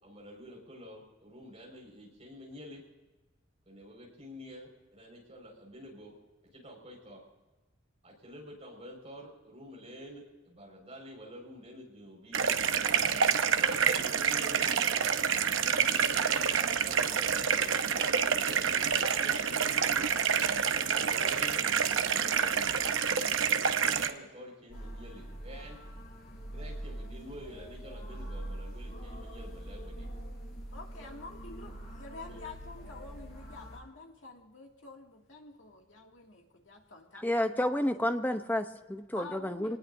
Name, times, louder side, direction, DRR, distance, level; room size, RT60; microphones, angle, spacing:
voice 1, 0.0-2.8 3.7-6.1 6.4-7.2 8.0-12.4 13.5-14.9 16.1-20.0 20.9-22.8 23.7-25.8 26.5-30.1 31.0-31.2 32.3-32.4, equal, 30° right, -2 dB, 5.2 m, -48 dB
sound 1, 12.3-24.1, right 7 dB, 75° right, 0.8 m, -28 dB
sound 2, 24.7-33.8, right 1 dB, 50° left, 4.6 m, -43 dB
voice 2, 30.7-37.6 38.3-38.4 39.2-39.8, left 3 dB, 70° left, 1 dB, 2.4 m, -48 dB
voice 3, 37.1-39.8, left 1 dB, 10° left, 7 dB, 0.8 m, -30 dB
26.0 x 19.0 x 2.7 m, 1.2 s
head